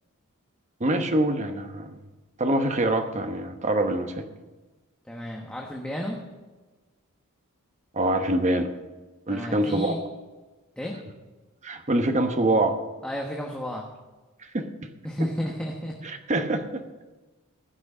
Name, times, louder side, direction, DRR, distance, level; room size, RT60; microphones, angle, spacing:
voice 1, 0.8-2.0 2.4-4.2 7.9-8.7 9.3-9.9 11.6-12.8 14.5-14.7 16.3-16.8, right 1 dB, 35° right, 6 dB, 1.0 m, -24 dB
voice 2, 5.1-6.2 9.3-10.0 10.8-11.0 13.0-13.9 15.0-16.0, equal, 5° left, -1 dB, 1.2 m, -32 dB
15.5 x 6.2 x 7.2 m, 1.2 s
head